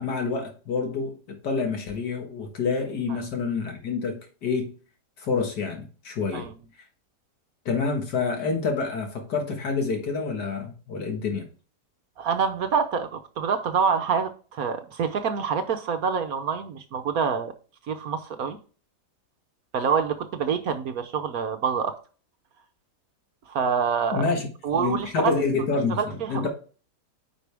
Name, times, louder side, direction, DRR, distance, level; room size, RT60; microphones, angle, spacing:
voice 1, 0.0-4.7 5.2-6.5 7.7-11.5 24.1-24.5 24.7-26.5, left 4 dB, 70° left, 4 dB, 2.1 m, -28 dB
voice 2, 12.2-17.5 17.9-18.6 19.7-21.9 23.5-24.3 24.6-25.3 26.0-26.5, right 6 dB, 60° right, 8 dB, 1.2 m, -26 dB
9.6 x 5.1 x 3.4 m, 0.37 s
omnidirectional pair, 1.9 m